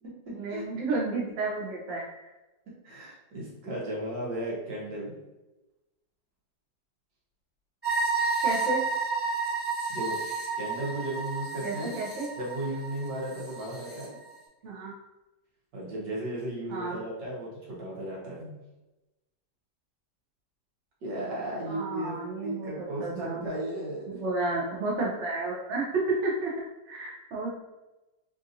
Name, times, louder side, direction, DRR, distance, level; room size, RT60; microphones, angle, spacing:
voice 1, 0.3-2.1 8.4-8.8 11.6-12.3 14.6-14.9 16.7-17.0 21.7-23.5 24.1-26.5 26.9-27.6, right 3 dB, 50° right, -4 dB, 0.9 m, -31 dB
voice 2, 2.8-5.2 9.9-10.2 10.6-12.0 12.4-14.2 15.7-18.6 21.0-22.1 22.4-24.2, right 1 dB, 75° right, -6 dB, 1.8 m, -35 dB
sound 1, 7.8-14.1, right 4 dB, 10° right, 0.6 m, -31 dB
3.8 x 2.5 x 2.6 m, 1.0 s
omnidirectional pair, 1.9 m